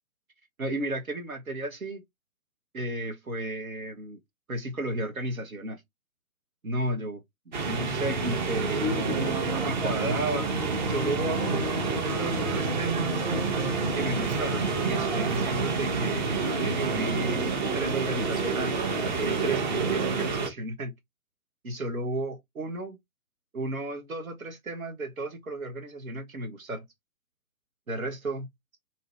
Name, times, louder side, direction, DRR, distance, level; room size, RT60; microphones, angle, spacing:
voice 1, 0.6-2.0 2.7-4.2 4.5-5.8 6.6-7.2 7.6-10.5 10.9-13.2 13.9-20.9 21.6-23.0 23.5-26.8 27.9-28.5, right 1 dB, 75° right, 1.1 m, -34 dB
sound 1, 7.5-20.5, right 4 dB, 35° right, 0.8 m, -28 dB
sound 2, 9.1-18.3, right 3 dB, 10° right, 1.2 m, -41 dB
2.8 x 2.7 x 3.1 m
figure-of-eight pair, 125°, 42 cm